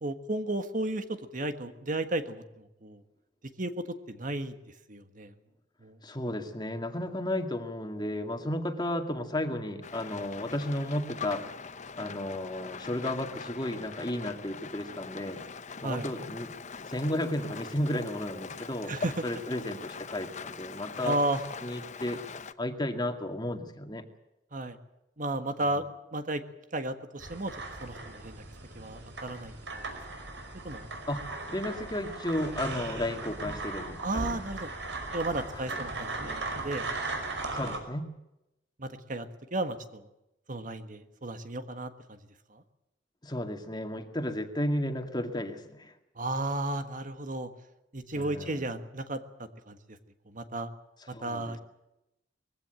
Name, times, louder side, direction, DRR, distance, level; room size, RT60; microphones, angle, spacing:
voice 1, 0.0-3.0 3.6-4.5 4.9-5.3 5.8-6.0 15.8-16.1 18.9-19.2 21.0-21.4 24.5-24.8 25.2-25.8 26.1-26.4 26.7-28.4 28.7-29.5 30.2-30.3 30.6-30.9 34.0-34.7 35.1-36.9 37.6-37.7 38.8-40.0 40.5-42.2 42.5-42.6 46.2-47.5 47.9-50.0 50.3-50.7 51.2-51.6, right 2 dB, 45° right, 9 dB, 1.5 m, -34 dB
voice 2, 6.0-11.5 12.0-15.4 15.8-16.5 16.8-18.9 19.2-21.2 21.6-22.2 22.6-24.0 25.6-25.8 31.1-34.4 35.5-35.8 37.5-38.1 43.2-45.9 48.2-48.7 51.1-51.6, left 1 dB, 25° left, 6 dB, 2.1 m, -33 dB
Rain, 9.8-22.5, left 5 dB, 40° left, 0.9 m, -42 dB
sound 1, 27.2-37.8, right 2 dB, 70° right, 5.2 m, -38 dB
21.5 x 16.0 x 9.1 m, 0.89 s
head